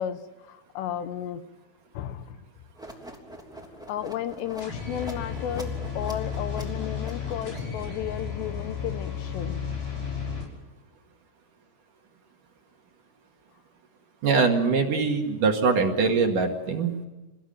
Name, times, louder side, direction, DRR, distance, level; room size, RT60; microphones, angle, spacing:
voice 1, 0.0-1.5 1.9-2.5 3.9-9.6, left 10 dB, 75° left, 11 dB, 3.0 m, -33 dB
sound 1, 2.7-8.0, right 1 dB, ahead, 1.8 m, -44 dB
sound 2, 4.6-10.4, left 6 dB, 45° left, 7.1 m, -33 dB
voice 2, 14.2-16.9, right 4 dB, 55° right, 3 dB, 2.9 m, -23 dB
28.5 x 15.5 x 9.1 m, 1.2 s
omnidirectional pair, 5.3 m